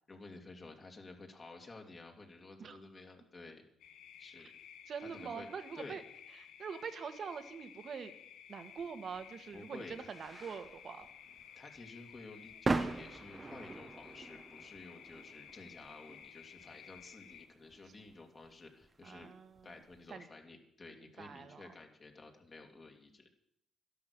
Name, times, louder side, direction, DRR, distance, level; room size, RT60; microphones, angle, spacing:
voice 1, 0.1-3.6 4.2-4.5 5.0-5.5 5.7-6.0 9.5-10.0 11.6-19.3 19.6-23.3, left 3 dB, 35° left, 2 dB, 2.5 m, -52 dB
sound 1, 3.8-17.5, left 9 dB, 80° left, 1.0 m, -55 dB
voice 2, 4.9-6.0 6.3-8.1 8.5-11.1 19.0-19.8 20.1-20.3 20.9-21.6, right 6 dB, 55° right, 9 dB, 1.5 m, -44 dB
sound 2, 8.7-20.0, right 3 dB, 25° right, 1.0 m, -43 dB
12.0 x 11.5 x 6.7 m, 0.73 s
cardioid pair, 90°, 0 cm